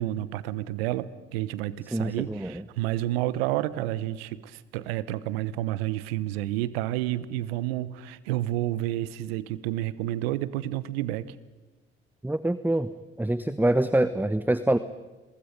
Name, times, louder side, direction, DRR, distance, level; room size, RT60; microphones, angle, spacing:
voice 1, 0.0-11.3, right 14 dB, 80° right, 17 dB, 1.0 m, -30 dB
voice 2, 1.9-2.6 12.2-12.9 13.2-14.8, right 1 dB, 5° right, 14 dB, 1.1 m, -25 dB
28.0 x 23.5 x 5.3 m, 1.2 s
hypercardioid pair, 45°, 30 cm